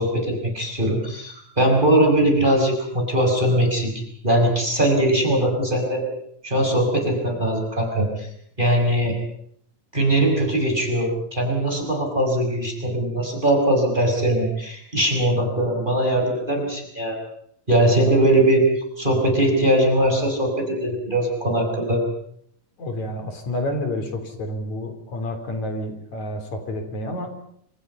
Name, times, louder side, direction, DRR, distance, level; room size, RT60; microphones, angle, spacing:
voice 1, 0.0-3.9 4.2-6.0 6.4-8.3 8.6-9.1 9.9-17.2 17.7-18.7 19.0-22.0, right 1 dB, 15° right, 3 dB, 6.1 m, -20 dB
voice 2, 17.8-18.2 22.8-27.3, left 1 dB, 70° left, 6 dB, 5.0 m, -29 dB
28.5 x 27.0 x 5.6 m, 0.70 s
omnidirectional pair, 3.4 m